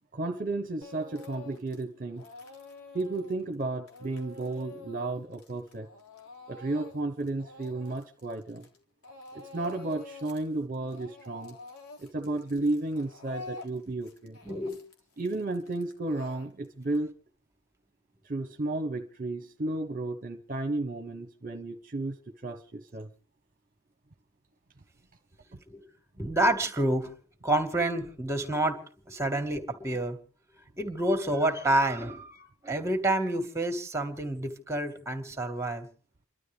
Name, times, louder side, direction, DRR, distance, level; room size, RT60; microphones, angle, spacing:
voice 1, 0.1-2.3 2.9-5.9 6.5-8.6 9.5-11.6 12.0-14.4 15.2-17.1 18.2-23.1 25.5-25.6, right 2 dB, 40° right, 1.2 m, -33 dB
Speech / Crying sobbing, 0.8-1.8 2.1-8.8 9.0-10.5 10.7-17.0, left 3 dB, 80° left, 3.6 m, -47 dB
voice 2, 14.4-14.8 25.7-25.8 26.2-27.1 27.4-28.8 29.1-30.2 30.8-35.9, right 1 dB, 15° right, 2.4 m, -28 dB
29.0 x 12.5 x 3.5 m
head